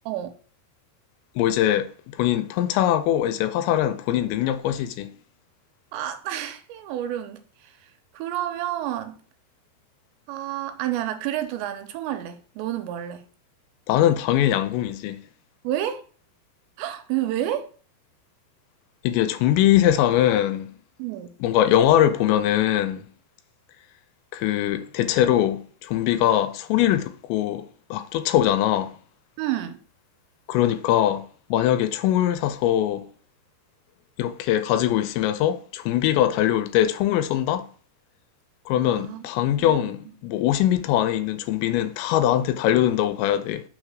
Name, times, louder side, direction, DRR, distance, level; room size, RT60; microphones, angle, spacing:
voice 1, 1.4-5.1 13.9-15.2 19.0-20.7 21.4-23.1 24.3-27.7 27.9-28.9 30.5-31.2 31.5-33.1 34.2-37.7 38.7-43.6, left 12 dB, 90° left, 2.9 m, -22 dB
voice 2, 5.9-7.7 8.1-9.2 10.3-13.3 15.6-16.0 16.8-17.7 21.0-21.3 29.4-29.8 38.8-39.2 39.5-39.9, right 12 dB, 80° right, 3.0 m, -30 dB
6.4 x 3.3 x 6.0 m
omnidirectional pair, 5.1 m